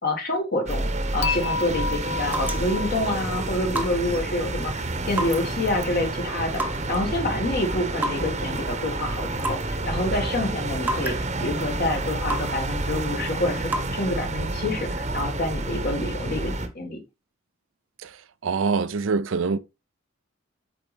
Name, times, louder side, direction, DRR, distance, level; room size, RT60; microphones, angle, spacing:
voice 1, 0.0-6.6 6.9-17.0, left 1 dB, 55° left, 2.0 m, -27 dB
sound 1, 0.7-16.7, right 2 dB, 35° right, 1.0 m, -29 dB
Dishes pots and pans / Chink clink, 1.2-4.4, left 5 dB, 80° left, 0.6 m, -32 dB
sound 2, 1.9-14.6, right 1 dB, 10° right, 0.9 m, -36 dB
voice 2, 18.4-19.6, right 4 dB, 80° right, 0.5 m, -24 dB
8.5 x 4.0 x 3.4 m
head